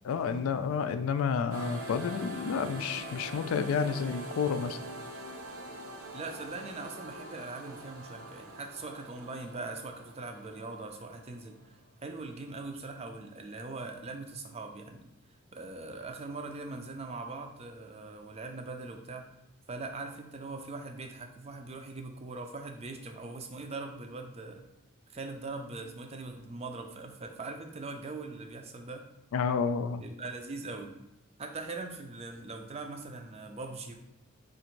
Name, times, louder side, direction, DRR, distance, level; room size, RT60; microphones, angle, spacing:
voice 1, 0.0-4.8 29.3-30.0, left 6 dB, 65° left, 10 dB, 0.3 m, -30 dB
sound 1, 1.5-11.8, right 1 dB, 70° right, 0.7 m, -44 dB
voice 2, 6.1-15.1 15.5-19.3 19.7-24.6 25.1-29.1 30.0-30.9 31.4-33.9, right 3 dB, 25° right, 4 dB, 0.4 m, -41 dB
3.8 x 2.5 x 4.4 m, 0.86 s
head